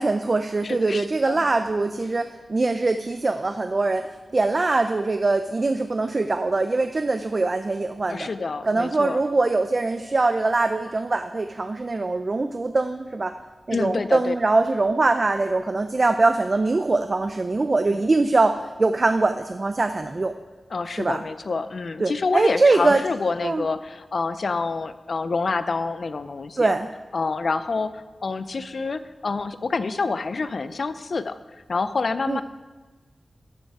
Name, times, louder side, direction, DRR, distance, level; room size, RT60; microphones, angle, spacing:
voice 1, 0.0-8.3 8.6-13.4 13.7-20.3 20.9-21.2 22.0-23.0 23.4-23.6 26.6-26.9 32.3-32.4, right 3 dB, 40° right, 9 dB, 0.4 m, -22 dB
voice 2, 0.6-1.4 8.1-9.2 13.7-14.3 17.9-18.0 20.7-26.8 27.1-31.4 31.7-32.4, left 4 dB, 65° left, 12 dB, 0.5 m, -27 dB
13.0 x 6.5 x 4.8 m, 1.3 s
wide cardioid pair, 95°, 0 cm